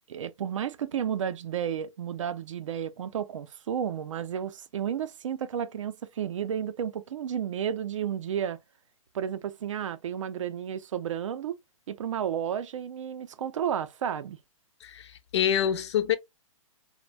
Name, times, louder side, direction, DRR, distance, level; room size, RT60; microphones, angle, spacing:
voice 1, 0.1-8.6 9.1-11.6 11.9-14.4, right 9 dB, 65° right, 0.4 m, -32 dB
voice 2, 14.8-16.2, left 9 dB, 55° left, 0.5 m, -26 dB
2.6 x 2.1 x 3.1 m
hypercardioid pair, 155°, 17 cm